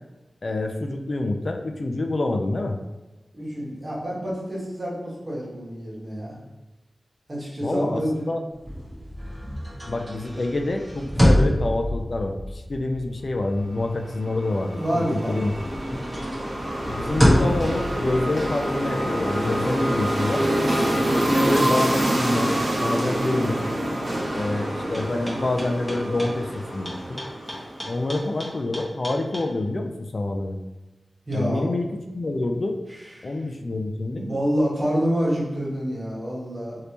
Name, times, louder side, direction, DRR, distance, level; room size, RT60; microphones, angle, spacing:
voice 1, 0.4-2.8 7.6-8.0 8.3-8.4 9.9-15.5 15.9-16.0 16.9-20.4 21.1-22.5 22.8-23.6 24.3-27.2 27.9-30.6 31.3-32.8 33.2-34.2, left 2 dB, 60° left, 4 dB, 0.3 m, -27 dB
voice 2, 3.3-6.4 7.3-8.3 14.7-15.4 31.3-31.6 32.9-33.4 34.1-36.8, equal, 45° right, -6 dB, 1.5 m, -27 dB
sound 1, 8.5-15.0 15.3-20.7, equal, 5° right, 1.5 m, -26 dB
sound 2, 13.8-28.1, right 1 dB, 70° right, 0.9 m, -26 dB
sound 3, 24.9-29.4, equal, 15° left, 1.1 m, -35 dB
3.2 x 2.7 x 2.9 m, 1.1 s
cardioid pair, 40°, 0 cm